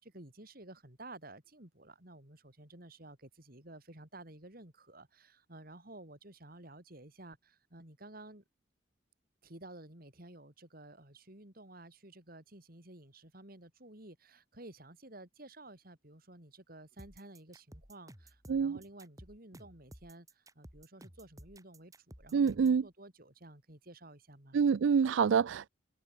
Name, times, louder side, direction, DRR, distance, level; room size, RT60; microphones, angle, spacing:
voice 1, 0.0-8.4 9.4-24.6, right 1 dB, 50° right, 3.8 m, -53 dB
sound 1, 17.0-22.8, right 1 dB, 15° right, 4.3 m, -54 dB
voice 2, 22.3-22.8 24.5-25.7, right 6 dB, 75° right, 0.4 m, -27 dB
head